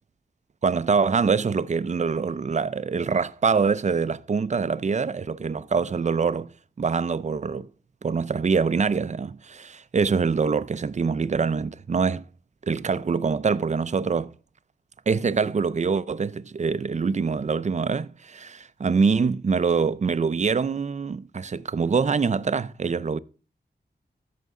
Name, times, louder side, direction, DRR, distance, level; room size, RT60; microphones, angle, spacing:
voice 1, 0.6-6.5 6.8-7.7 8.0-12.2 12.7-14.3 15.1-23.2, right 5 dB, 40° right, 0.5 m, -24 dB
14.5 x 6.7 x 3.7 m
wide cardioid pair, 75°, 18 cm